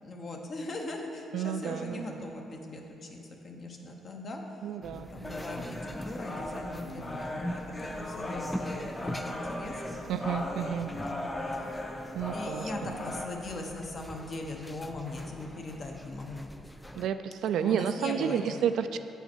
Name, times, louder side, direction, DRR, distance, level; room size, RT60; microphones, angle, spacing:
voice 1, 0.0-3.2 3.4-4.4 4.9-10.0 11.1-11.8 12.3-16.5 17.6-18.5, left 2 dB, 45° left, 1 dB, 1.0 m, -40 dB
voice 2, 1.3-2.2 4.6-5.1 10.1-10.9 12.1-12.9 17.0-19.0, right 8 dB, 80° right, 10 dB, 0.3 m, -31 dB
sound 1, 4.8-17.1, equal, 5° left, 0.4 m, -43 dB
sound 2, 5.2-13.2, left 1 dB, 25° left, 0.8 m, -38 dB
8.3 x 5.7 x 4.4 m, 2.9 s
cardioid pair, 90°, 0 cm